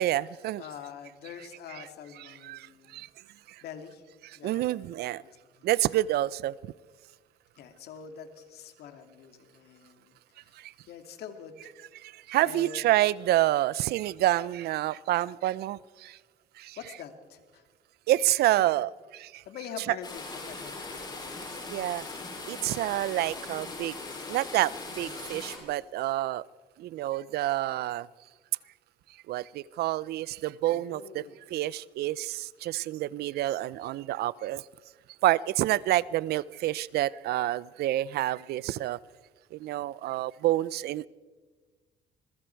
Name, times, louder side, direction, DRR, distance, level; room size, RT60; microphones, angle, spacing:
voice 1, 0.0-0.6 2.4-3.1 3.5-3.6 4.4-5.2 5.6-6.5 10.6-10.7 12.0-16.2 16.6-16.8 18.1-19.4 21.7-22.0 22.5-24.0 24.3-26.4 26.8-28.1 29.3-31.2 31.5-34.6 35.2-39.0 39.5-41.1, right 15 dB, 70° right, 22 dB, 0.5 m, -28 dB
voice 2, 0.6-3.0 3.6-4.0 4.4-5.0 5.2-5.7 7.6-10.5 10.9-11.7 12.4-13.0 16.8-17.6 18.6-18.7 19.5-22.1 30.7-31.4, left 7 dB, 70° left, 6 dB, 2.6 m, -45 dB
sound 1, 20.0-25.6, left 3 dB, 25° left, 6.2 m, -40 dB
25.5 x 22.0 x 4.7 m, 1.4 s
cardioid pair, 110°, 17 cm